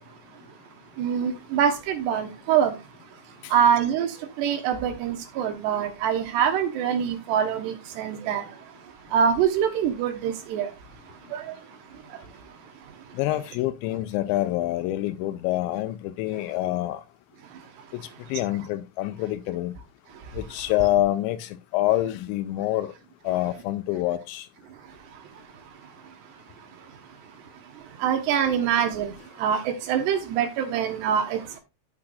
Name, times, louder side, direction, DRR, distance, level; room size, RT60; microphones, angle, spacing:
voice 1, 1.0-2.7 3.5-4.1 4.4-8.4 9.1-10.7 11.3-11.4 28.0-29.1 29.4-31.6, right 8 dB, 70° right, 3.0 m, -24 dB
voice 2, 13.1-17.0 17.9-18.0 18.3-19.7 20.3-22.9 23.2-24.5, left 15 dB, 85° left, 2.7 m, -26 dB
14.5 x 5.9 x 2.5 m
omnidirectional pair, 5.5 m